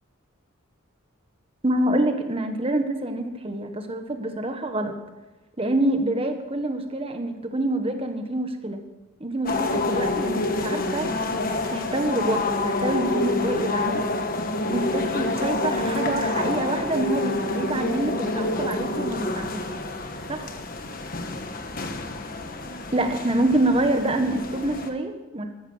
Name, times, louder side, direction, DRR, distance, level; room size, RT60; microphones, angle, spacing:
voice 1, 1.6-4.9 5.6-8.8 9.2-11.1 11.7-14.1 14.7-19.7 20.3-20.5 22.9-25.5, right 1 dB, 25° right, 6 dB, 1.4 m, -26 dB
sound 1, 9.5-24.9, left 2 dB, 40° left, 1.3 m, -28 dB
13.5 x 12.5 x 6.3 m, 1.1 s
head